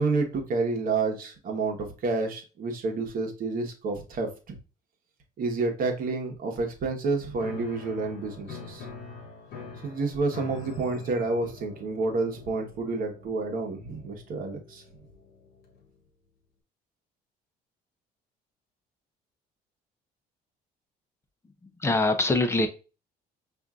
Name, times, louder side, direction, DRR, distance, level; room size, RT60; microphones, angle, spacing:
voice 1, 0.0-4.6 5.4-8.9 9.8-14.8, right 3 dB, 55° right, 1.1 m, -29 dB
Piano, 7.4-15.9, left 4 dB, 70° left, 1.0 m, -44 dB
voice 2, 21.8-22.7, left 2 dB, 15° left, 0.6 m, -23 dB
5.2 x 2.6 x 2.4 m
cardioid pair, 110°, 17 cm